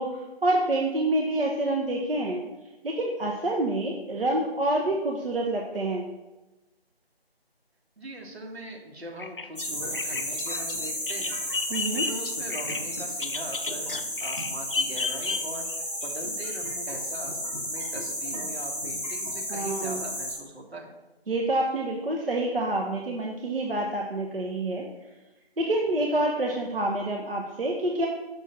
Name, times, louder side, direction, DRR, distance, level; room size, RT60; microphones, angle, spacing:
voice 1, 0.0-2.4 2.8-6.0 11.7-12.1 19.5-20.0 21.3-24.8 25.6-28.1, right 1 dB, 60° right, -1 dB, 0.9 m, -27 dB
voice 2, 8.0-11.4 12.1-13.9 14.2-15.7 16.0-20.9, right 1 dB, 80° right, 1 dB, 1.6 m, -41 dB
Bird vocalization bird call bird song, 9.2-15.8, left 4 dB, 60° left, 0.5 m, -33 dB
sound 1, 9.6-20.4, equal, 10° left, 1.0 m, -33 dB
6.1 x 3.3 x 5.8 m, 1.1 s
figure-of-eight pair, 160°, 32 cm